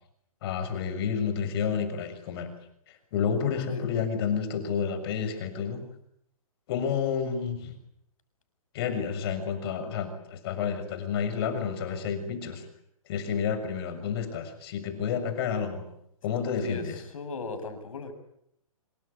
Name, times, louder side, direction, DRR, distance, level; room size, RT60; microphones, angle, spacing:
voice 1, 0.4-2.5 2.9-5.8 6.7-7.7 8.7-12.7 13.1-15.8 16.2-17.0, left 7 dB, 45° left, 9 dB, 6.7 m, -30 dB
voice 2, 16.6-18.1, left 4 dB, 65° left, 9 dB, 7.0 m, -37 dB
27.0 x 24.0 x 8.3 m, 0.74 s
hypercardioid pair, 135°, 18 cm